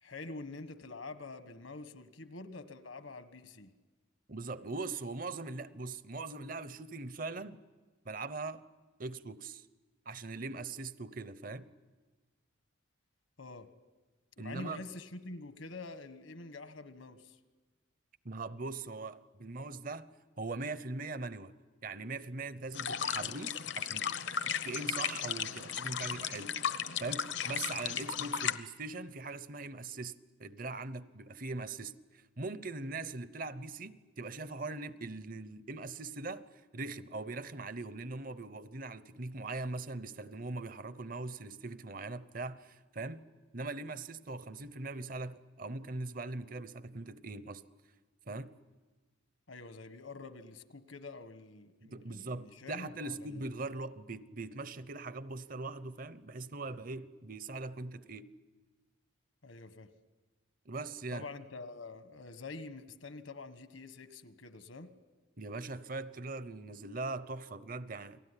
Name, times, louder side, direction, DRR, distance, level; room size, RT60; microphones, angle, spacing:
voice 1, 0.0-3.7 13.4-13.7 14.4-17.4 49.5-53.4 59.4-59.9 61.1-64.9, left 3 dB, 75° left, 1.5 m, -46 dB
voice 2, 4.3-7.6 8.0-8.6 9.0-9.7 10.1-11.7 14.4-14.8 18.2-20.1 20.4-21.5 21.8-24.1 24.6-26.6 27.0-36.4 36.7-43.2 43.5-47.6 48.3-48.5 51.8-58.3 60.7-61.3 65.4-68.2, right 3 dB, 45° right, 0.8 m, -41 dB
sound 1, 22.7-28.6, left 8 dB, 60° left, 0.9 m, -35 dB
29.0 x 19.5 x 9.9 m
head